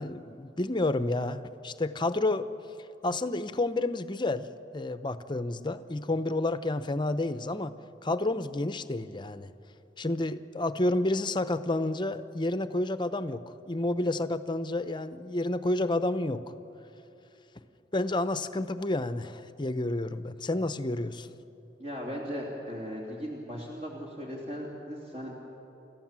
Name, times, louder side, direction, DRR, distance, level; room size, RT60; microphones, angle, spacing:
voice 1, 0.0-2.5 3.0-4.5 4.7-7.7 8.0-9.5 10.0-16.4 17.9-21.3, left 2 dB, 25° left, 11 dB, 0.8 m, -30 dB
voice 2, 21.8-25.4, equal, 45° right, -3 dB, 3.1 m, -38 dB
30.0 x 14.0 x 7.5 m, 2.9 s
head